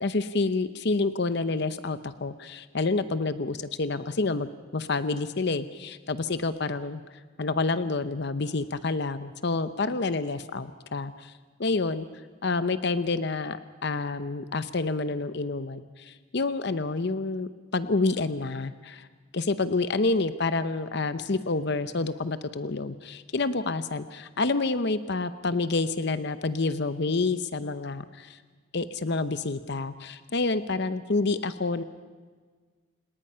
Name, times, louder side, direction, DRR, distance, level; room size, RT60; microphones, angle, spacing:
voice 1, 0.0-7.0 7.4-11.3 11.6-12.1 12.4-19.1 19.3-28.4 28.7-31.8, left 3 dB, 55° left, 12 dB, 0.7 m, -28 dB
29.0 x 19.0 x 5.6 m, 1.5 s
head